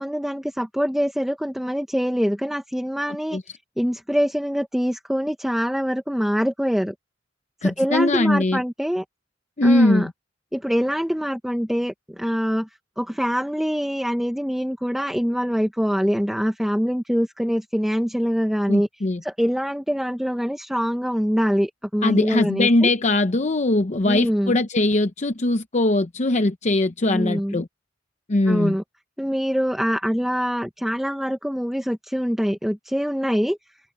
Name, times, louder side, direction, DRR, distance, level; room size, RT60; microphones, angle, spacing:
voice 1, 0.0-6.9 7.6-9.0 9.6-10.1 10.5-12.7 13.0-18.9 19.2-22.9 24.0-24.6 27.0-27.6 28.5-28.8 29.2-33.6, equal, ahead, 1.2 m, -24 dB
voice 2, 7.6-8.6 9.6-10.1 18.7-19.2 22.0-27.7 28.3-28.8, left 2 dB, 40° left, 0.8 m, -21 dB
head